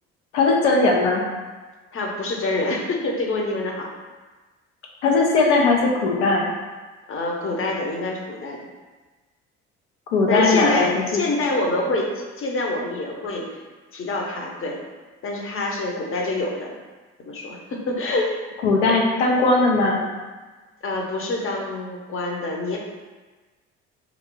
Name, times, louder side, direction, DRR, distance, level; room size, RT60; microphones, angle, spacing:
voice 1, 0.3-1.2 5.0-6.5 10.1-11.2 18.6-20.1, left 3 dB, 90° left, -1 dB, 0.6 m, -19 dB
voice 2, 1.9-3.9 7.1-8.6 10.3-13.5 13.9-14.8 15.2-16.7 17.2-18.4 20.8-22.8, left 2 dB, 40° left, 0 dB, 0.8 m, -26 dB
2.7 x 2.5 x 3.7 m, 1.3 s
hypercardioid pair, 55°, 34 cm